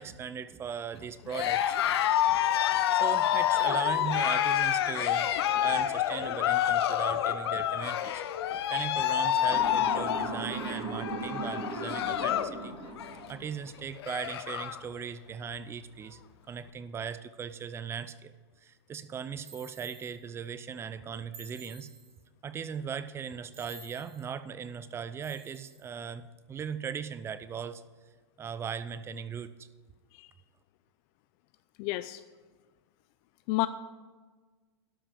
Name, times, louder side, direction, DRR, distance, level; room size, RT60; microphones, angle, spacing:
voice 1, 0.0-2.0 2.3-2.4 2.7-8.2 8.5-12.8 13.3-16.2 16.5-18.3 18.6-21.9 22.4-27.8 28.4-29.7, right 7 dB, 20° right, 14 dB, 0.5 m, -38 dB
Cheering, 1.3-12.6 12.9-13.3 13.7-13.8 14.0-14.8, left 11 dB, 65° left, 0.8 m, -28 dB
Motor vehicle (road) / Siren, 9.5-13.7, right 4 dB, 35° right, 2.0 m, -38 dB
sound 1, 19.4-20.2 21.3-22.2 23.5-24.2 25.2-25.9, right 3 dB, 60° right, 2.3 m, -51 dB
voice 2, 31.8-32.2 33.5-33.7, left 20 dB, 45° left, 13 dB, 0.4 m, -29 dB
12.5 x 5.8 x 7.0 m, 1.4 s
hypercardioid pair, 125°, 14 cm